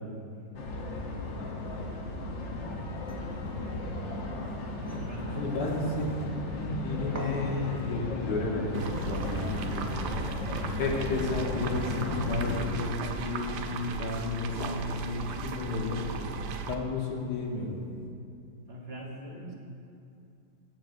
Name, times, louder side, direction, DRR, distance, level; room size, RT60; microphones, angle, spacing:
sound 1, 0.5-12.6, left 2 dB, 55° left, 0.9 m, -35 dB
sound 2, 3.1-18.1, right 1 dB, 20° right, 0.4 m, -48 dB
voice 1, 4.8-5.7 12.0-12.4 18.7-19.6, right 1 dB, 50° right, -2 dB, 0.9 m, -42 dB
voice 2, 5.3-9.9 10.8-16.0 16.7-17.8, left 3 dB, 85° left, -1 dB, 1.7 m, -32 dB
sound 3, 8.7-16.7, right 5 dB, 80° right, 1.1 m, -36 dB
14.0 x 7.0 x 2.5 m, 2.5 s
omnidirectional pair, 1.8 m